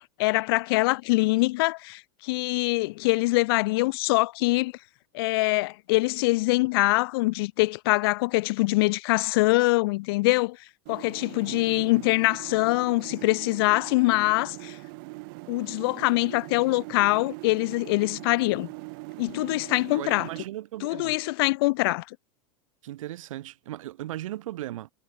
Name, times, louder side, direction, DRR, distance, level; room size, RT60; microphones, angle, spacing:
voice 1, 0.0-4.7 5.1-10.6 10.9-14.8 15.5-18.7 19.2-20.3 20.8-22.0, left 22 dB, 50° left, 1.3 m, -24 dB
sound 1, 10.9-20.5, right 30 dB, 40° right, 1.8 m, -42 dB
voice 2, 11.5-12.0 19.6-21.2 22.8-24.9, right 14 dB, 85° right, 3.0 m, -38 dB
supercardioid pair, 180°, 16 cm